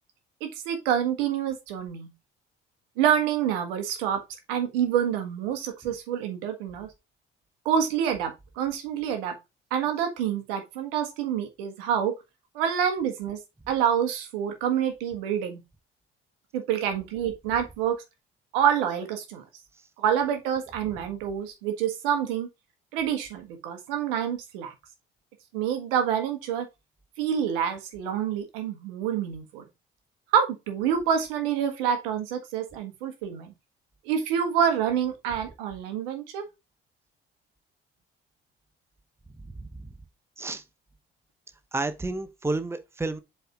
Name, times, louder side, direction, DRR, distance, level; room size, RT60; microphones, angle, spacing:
voice 1, 0.4-2.1 3.0-4.2 4.5-6.9 7.6-9.4 9.7-12.1 12.5-13.4 13.7-15.6 16.5-17.9 18.5-19.4 20.0-22.5 22.9-24.7 25.5-26.7 27.2-29.6 30.3-33.5 34.0-36.4, right 9 dB, 70° right, 1.6 m, -27 dB
voice 2, 41.7-43.2, right 2 dB, 10° right, 1.0 m, -30 dB
8.0 x 4.0 x 3.8 m
figure-of-eight pair, 50°, 29 cm